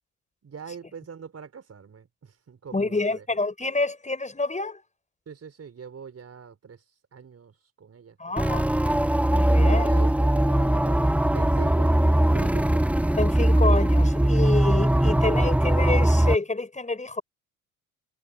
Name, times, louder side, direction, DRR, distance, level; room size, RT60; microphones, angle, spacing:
voice 1, 0.4-3.2 5.2-6.8 7.1-8.7 9.5-12.8, right 6 dB, 35° right, 5.1 m, -43 dB
voice 2, 2.7-4.8 8.2-8.7 9.3-9.9 13.2-17.2, left 3 dB, 15° left, 5.6 m, -28 dB
sound 1, 8.4-16.4, right 1 dB, 5° right, 1.1 m, -20 dB
figure-of-eight pair, 55°, 43 cm